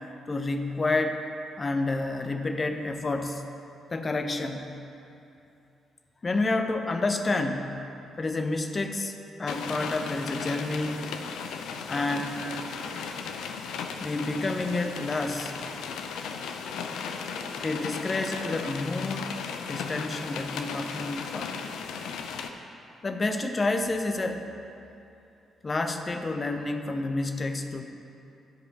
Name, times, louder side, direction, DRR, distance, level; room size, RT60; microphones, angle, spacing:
voice 1, 0.3-1.2 1.6-3.4 3.9-4.7 6.2-7.9 8.2-9.1 9.4-11.2 11.9-12.4 14.0-15.6 17.6-19.4 19.7-21.7 23.0-24.5 25.6-27.8, left 2 dB, 35° left, 6 dB, 0.7 m, -29 dB
sound 1, 9.5-22.5, left 6 dB, 65° left, 0.5 m, -36 dB
12.5 x 5.0 x 4.1 m, 2.8 s
figure-of-eight pair, 40°, 0 cm